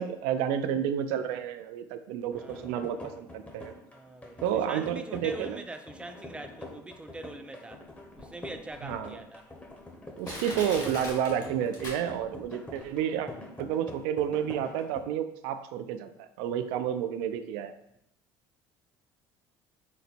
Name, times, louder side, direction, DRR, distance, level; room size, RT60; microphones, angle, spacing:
voice 1, 0.0-3.7 4.4-5.6 8.8-9.2 10.2-13.3 13.6-17.7, right 9 dB, 85° right, 9 dB, 0.4 m, -30 dB
sound 1, 2.3-15.0, left 1 dB, 15° left, 0.8 m, -45 dB
voice 2, 2.3-2.9 3.9-7.8 8.2-9.4, right 2 dB, 10° right, 6 dB, 0.4 m, -43 dB
Crushing, 8.2-8.3 8.9-9.0 9.7-9.8 10.2-12.4 12.8-12.9, left 1 dB, 35° left, 1.5 m, -40 dB
4.0 x 2.1 x 4.1 m, 0.77 s
supercardioid pair, 95°, 10 cm